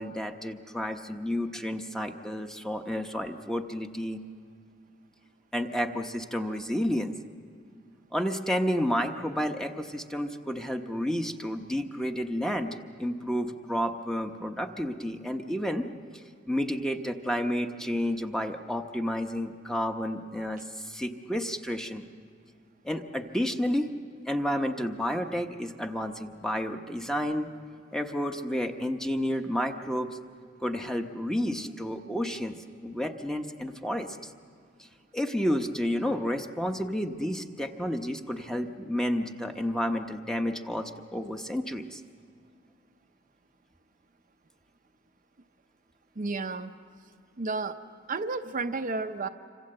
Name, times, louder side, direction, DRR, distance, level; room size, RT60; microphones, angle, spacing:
voice 1, 0.0-4.2 5.5-7.1 8.1-15.9 16.5-22.1 22.8-23.9 24.3-27.5 27.9-30.2 30.6-32.6 32.8-34.3 35.1-42.0, equal, 5° left, 5 dB, 0.9 m, -31 dB
voice 2, 46.2-46.7 47.4-47.8 48.1-49.3, right 3 dB, 40° right, 7 dB, 0.7 m, -31 dB
26.5 x 24.5 x 7.8 m, 2.2 s
head